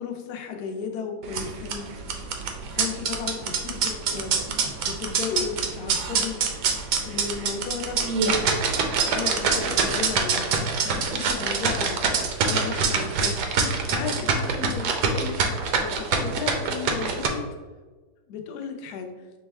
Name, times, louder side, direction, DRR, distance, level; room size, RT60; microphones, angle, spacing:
voice 1, 0.0-2.3 2.7-6.4 7.0-8.0 9.1-13.4 13.9-15.4 15.8-17.4 18.3-19.1, left 6 dB, 70° left, 4 dB, 1.1 m, -34 dB
sound 1, 1.2-17.3, right 5 dB, 70° right, 1.0 m, -25 dB
6.0 x 2.2 x 3.3 m, 1.3 s
omnidirectional pair, 2.0 m